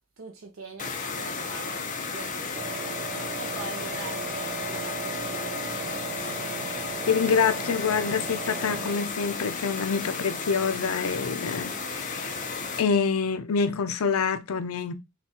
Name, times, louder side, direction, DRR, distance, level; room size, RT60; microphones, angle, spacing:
voice 1, 0.2-1.8 2.1-2.9 3.4-6.0, right 4 dB, 70° right, 0.6 m, -42 dB
sound 1, 0.8-12.8, left 4 dB, 40° left, 0.6 m, -34 dB
Wind instrument woodwind instrument, 2.5-9.2, right 5 dB, 30° right, 0.8 m, -37 dB
voice 2, 6.7-12.4 12.8-14.9, left 6 dB, 85° left, 0.5 m, -26 dB
5.8 x 2.3 x 2.8 m
head